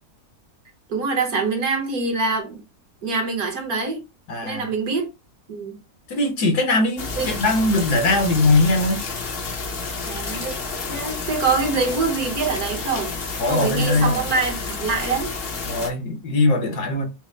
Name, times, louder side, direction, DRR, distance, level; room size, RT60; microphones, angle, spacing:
voice 1, 0.9-2.6 3.0-4.0 4.4-5.1 5.5-5.7 7.2-7.4 10.1-10.5 10.9-13.1 13.5-15.3, right 4 dB, 60° right, 1.5 m, -24 dB
voice 2, 4.3-4.7 6.1-9.0 13.4-14.2 15.7-17.1, left 2 dB, 70° left, 1.6 m, -20 dB
sound 1, 7.0-15.9, left 4 dB, 50° left, 0.8 m, -30 dB
5.3 x 2.1 x 3.2 m
omnidirectional pair, 1.8 m